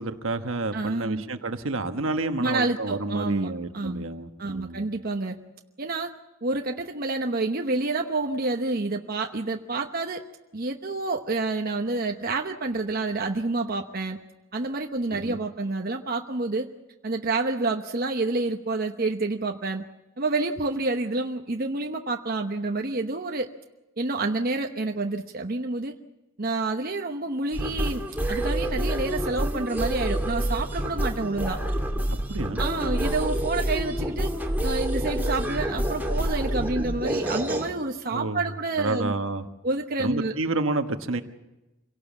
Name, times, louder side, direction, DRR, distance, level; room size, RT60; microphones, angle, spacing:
voice 1, 0.0-4.9 15.1-15.4 32.1-32.7 38.1-38.4 38.8-39.4 40.0-41.2, right 2 dB, 70° right, 7 dB, 1.3 m, -29 dB
voice 2, 0.7-1.2 2.4-4.0 4.4-5.4 5.8-6.1 6.4-10.2 10.5-14.2 14.5-16.7 17.0-19.8 20.2-23.5 24.0-25.9 26.4-31.6 32.6-34.3 34.6-39.2 39.6-40.3, right 3 dB, 45° right, 3 dB, 1.0 m, -28 dB
sound 1, 27.5-37.7, right 1 dB, 10° right, 2.5 m, -28 dB
26.0 x 17.5 x 7.2 m, 1.0 s
head